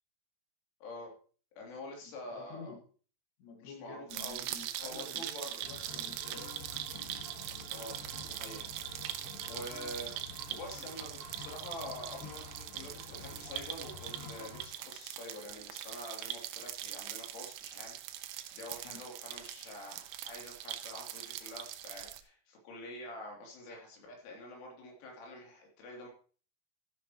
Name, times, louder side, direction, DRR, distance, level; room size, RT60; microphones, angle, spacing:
voice 1, 0.8-1.1 1.6-2.7 3.6-4.5 4.8-5.6 7.7-8.8 9.5-10.1 10.5-26.1, left 1 dB, 90° left, -1 dB, 5.5 m, -46 dB
voice 2, 2.3-2.8 3.4-6.5 18.8-19.0, left 4 dB, 65° left, 2 dB, 3.7 m, -50 dB
sound 1, 4.1-22.2, right 12 dB, 85° right, 2.9 m, -42 dB
sound 2, 5.6-14.6, left 2 dB, 30° left, 1.9 m, -49 dB
14.5 x 10.5 x 3.0 m, 0.40 s
omnidirectional pair, 5.4 m